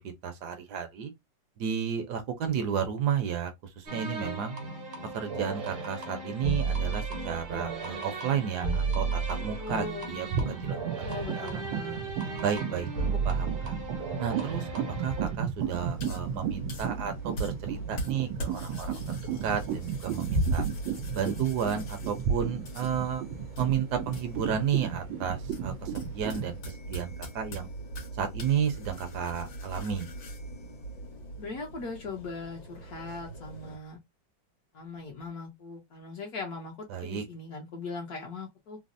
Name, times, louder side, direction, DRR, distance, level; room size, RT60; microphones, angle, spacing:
voice 1, 0.2-1.1 1.6-4.5 5.1-11.1 11.3-11.6 12.4-12.9 13.2-13.8 14.2-14.7 15.0-20.6 21.1-23.2 23.6-27.7 28.2-30.1 36.9-37.2, right 8 dB, 65° right, 1.1 m, -32 dB
sound 1, 3.9-15.3, right 4 dB, 50° right, 0.7 m, -34 dB
sound 2, 9.4-9.8 10.1-26.5, right 6 dB, 90° right, 1.3 m, -33 dB
voice 2, 9.6-10.1 11.0-12.0 31.4-34.0 34.7-38.8, left 4 dB, 60° left, 1.2 m, -39 dB
sound 3, 15.6-33.8, right 2 dB, 85° left, 2.0 m, -40 dB
4.0 x 2.0 x 2.5 m
omnidirectional pair, 2.0 m